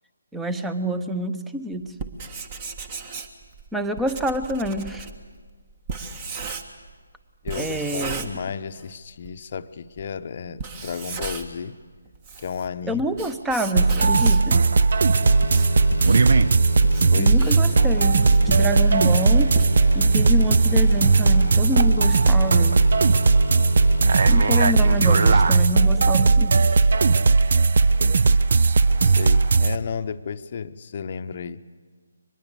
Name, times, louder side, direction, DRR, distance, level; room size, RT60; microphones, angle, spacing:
voice 1, 0.3-1.9 3.7-5.1 7.5-8.3 12.9-14.7 17.1-19.5 19.9-22.8 24.3-26.7, equal, 5° right, 9 dB, 0.9 m, -27 dB
Writing, 1.9-6.9 7.5-8.9 9.2-9.3 10.0-10.1 10.5-11.7 12.1-14.6 15.1-20.2, right 4 dB, 25° right, 1.5 m, -35 dB
voice 2, 7.4-11.8 12.4-13.1 17.1-17.6 29.0-31.6, left 6 dB, 40° left, 10 dB, 0.8 m, -33 dB
sound 1, 13.8-29.8, right 4 dB, 50° right, 0.7 m, -17 dB
sound 2, 15.2-26.8 27.2-27.3, left 2 dB, 70° left, 1.0 m, -32 dB
24.0 x 20.5 x 8.1 m, 1.5 s
figure-of-eight pair, 150°, 0 cm